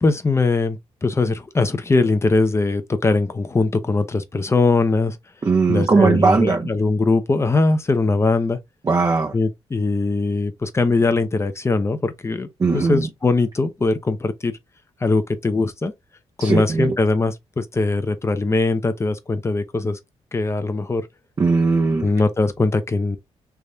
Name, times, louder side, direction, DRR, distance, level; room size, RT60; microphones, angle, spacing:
voice 1, 0.0-5.2 5.7-8.6 9.3-12.5 12.7-14.5 15.0-15.9 16.4-20.0 20.3-21.1 22.0-23.2, left 3 dB, 25° left, 0.7 m, -21 dB
voice 2, 5.4-6.7 8.8-9.3 12.6-13.1 16.4-16.9 21.4-22.1, right 4 dB, 30° right, 0.6 m, -18 dB
3.5 x 3.1 x 2.7 m
cardioid pair, 95°, 11 cm